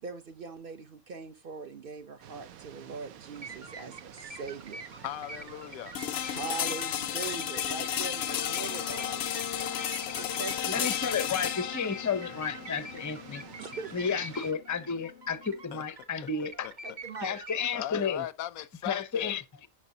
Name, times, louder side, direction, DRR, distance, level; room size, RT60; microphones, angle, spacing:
voice 1, 0.0-4.8 6.3-9.2 10.2-10.9 13.6-14.0 16.8-17.4, right 5 dB, 50° right, 0.7 m, -41 dB
sound 1, 2.2-14.5, right 10 dB, 85° right, 1.2 m, -50 dB
sound 2, 3.3-17.8, right 2 dB, 35° right, 1.2 m, -47 dB
voice 2, 5.0-6.0 15.7-15.8 16.6-16.7 17.7-19.4, left 13 dB, 90° left, 1.1 m, -38 dB
sound 3, 5.9-15.8, left 10 dB, 60° left, 0.7 m, -34 dB
voice 3, 10.7-13.4 13.9-16.7 17.2-18.3 18.6-19.7, left 6 dB, 25° left, 0.3 m, -32 dB
11.0 x 6.4 x 2.7 m
omnidirectional pair, 1.4 m